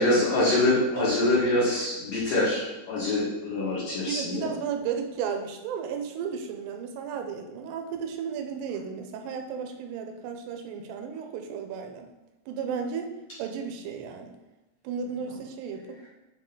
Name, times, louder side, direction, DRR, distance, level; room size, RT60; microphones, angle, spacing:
voice 1, 0.0-4.5, left 2 dB, 55° left, -8 dB, 2.4 m, -25 dB
voice 2, 1.0-1.4 4.1-12.1 12.5-13.1 13.4-14.3 14.8-16.1, right 7 dB, 85° right, 4 dB, 2.8 m, -34 dB
8.5 x 3.8 x 3.8 m, 1.0 s
omnidirectional pair, 4.7 m